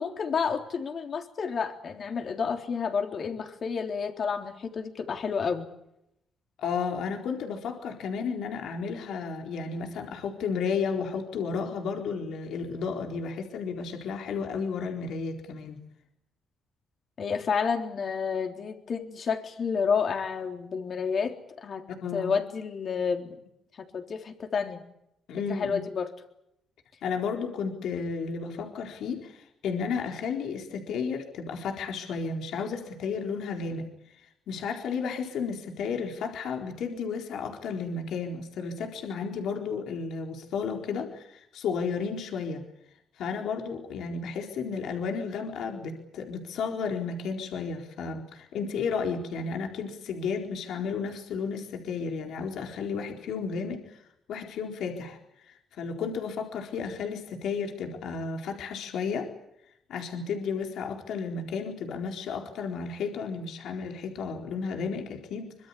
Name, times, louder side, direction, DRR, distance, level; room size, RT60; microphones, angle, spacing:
voice 1, 0.0-5.7 17.2-21.9 22.1-23.4 23.8-24.8 25.5-26.1, left 6 dB, 50° left, 4 dB, 3.7 m, -30 dB
voice 2, 6.6-15.8 21.9-22.3 25.3-25.8 27.0-33.9 34.2-42.6 43.2-54.0 54.3-55.2 55.4-59.3 59.9-65.7, left 5 dB, 75° left, 2 dB, 4.2 m, -33 dB
24.5 x 22.5 x 8.5 m, 0.81 s
cardioid pair, 90°, 0 cm